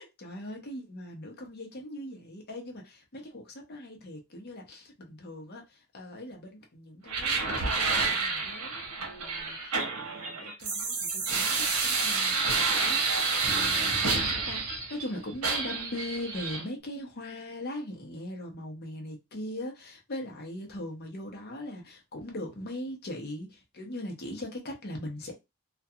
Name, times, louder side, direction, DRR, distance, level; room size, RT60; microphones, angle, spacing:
voice 1, 0.0-25.3, left 1 dB, 45° left, 0.7 m, -40 dB
sound 1, 7.1-15.1 15.4-16.6, right 4 dB, 85° right, 0.9 m, -29 dB
2.4 x 2.2 x 2.6 m
head